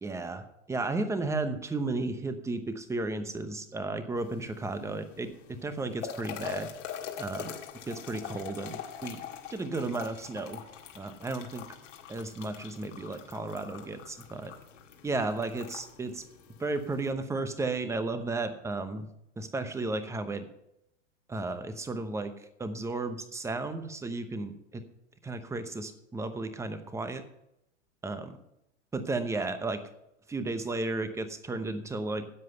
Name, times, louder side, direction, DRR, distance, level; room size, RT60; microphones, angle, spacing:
voice 1, 0.0-6.7 7.2-7.6 7.9-9.2 9.5-10.6 10.9-11.6 12.1-14.5 15.0-16.3 16.6-19.1 19.4-20.5 21.3-24.9 25.2-27.2 28.0-28.4 28.9-29.9 30.3-32.3, right 3 dB, 10° right, 10 dB, 0.9 m, -34 dB
sound 1, 4.2-17.1, left 8 dB, 80° left, 2.1 m, -44 dB
11.0 x 7.7 x 6.6 m, 0.82 s
hypercardioid pair, 135°, 37 cm